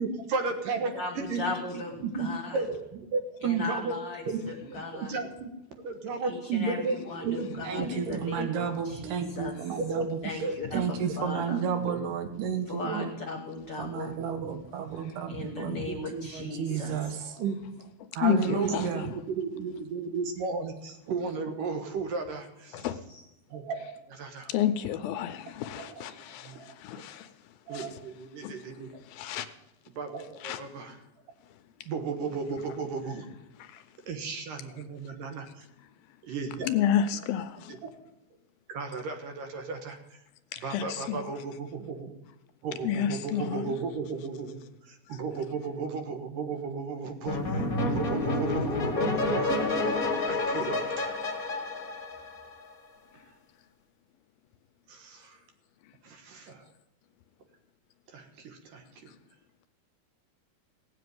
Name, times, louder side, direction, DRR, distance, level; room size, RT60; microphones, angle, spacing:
voice 1, 0.0-1.5 2.0-2.3 2.5-4.0 4.2-5.5 5.8-8.5 9.4-9.5 9.8-10.1 10.4-11.1 11.5-11.6 11.9-12.0 12.4-12.5 12.8-13.0 15.3-16.2 17.4-17.6 18.3-22.9 23.5-24.5 25.8-26.0 26.5-26.6 27.7-29.0 30.0-31.0 31.9-33.3 34.1-35.5 36.3-36.7 37.7-37.9 38.7-40.0 40.6-42.2 42.6-44.6 44.9-49.5 50.2-51.2 54.9-55.4 56.0-56.6 58.1-59.1, right 4 dB, 65° right, 2.8 m, -34 dB
voice 2, 0.9-2.6 3.4-5.1 6.2-9.6 10.2-11.6 12.7-14.1 15.3-17.1 23.1-23.2, left 3 dB, 50° left, 1.7 m, -38 dB
voice 3, 7.6-10.4 10.7-13.1 13.8-15.7 16.1-17.4 18.1-19.1, right 7 dB, 80° right, 3.5 m, -32 dB
voice 4, 18.2-18.9 22.7-23.0 24.5-27.3 27.7-28.0 28.4-28.5 29.1-29.5 30.4-30.6 33.6-33.8 36.7-37.7 40.5-41.3 42.8-43.7, left 9 dB, 80° left, 2.4 m, -30 dB
sound 1, 47.3-52.7, left 2 dB, 35° left, 1.4 m, -29 dB
17.0 x 7.8 x 9.4 m
omnidirectional pair, 4.6 m